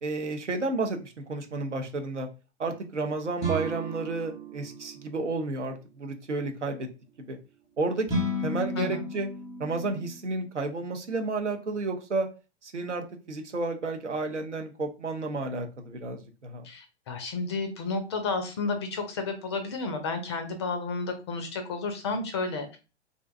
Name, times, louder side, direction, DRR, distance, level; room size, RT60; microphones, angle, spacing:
voice 1, 0.0-2.3 2.6-6.9 7.2-7.4 7.8-9.3 9.6-12.3 12.6-16.6, right 3 dB, 85° right, 4 dB, 0.6 m, -31 dB
sound 1, 3.4-5.4 8.1-10.2, equal, 10° right, 0.8 m, -33 dB
voice 2, 16.6-22.8, left 3 dB, 25° left, 6 dB, 0.3 m, -32 dB
2.5 x 2.1 x 2.4 m, 0.32 s
figure-of-eight pair, 105°, 35 cm